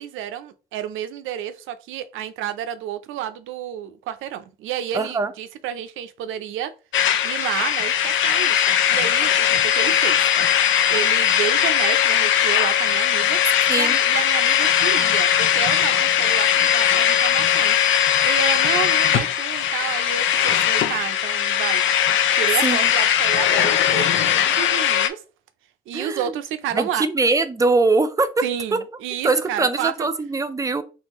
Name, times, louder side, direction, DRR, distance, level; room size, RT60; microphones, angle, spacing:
voice 1, 0.0-6.7 7.2-10.2 10.9-13.4 13.8-17.8 18.2-21.8 22.3-25.2 25.9-27.1 28.4-30.1, right 10 dB, 90° right, 0.5 m, -30 dB
voice 2, 4.9-5.3 13.7-14.0 22.6-22.8 25.9-26.2 26.7-28.3 29.2-30.8, right 3 dB, 15° right, 0.5 m, -21 dB
sound 1, 6.9-25.1, left 9 dB, 75° left, 0.5 m, -19 dB
3.7 x 3.3 x 3.0 m
cardioid pair, 90°, 20 cm